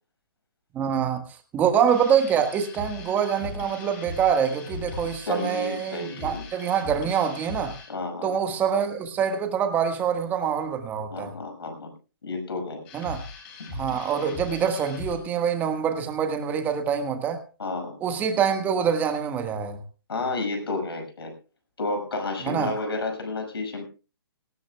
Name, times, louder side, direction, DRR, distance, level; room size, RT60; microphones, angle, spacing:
voice 1, 0.7-1.2 1.5-7.8 8.2-11.3 12.9-13.3 13.7-17.4 18.0-19.8 22.4-22.7, right 7 dB, 15° right, 1.4 m, -25 dB
sound 1, 1.9-7.9 12.8-15.2, left 3 dB, 25° left, 5.9 m, -39 dB
voice 2, 5.3-6.4 7.9-8.4 11.1-11.9 12.2-12.8 17.6-17.9 20.1-21.3 21.8-23.8, left 2 dB, 80° left, 6.0 m, -31 dB
18.0 x 17.5 x 2.2 m
hypercardioid pair, 155°, 13 cm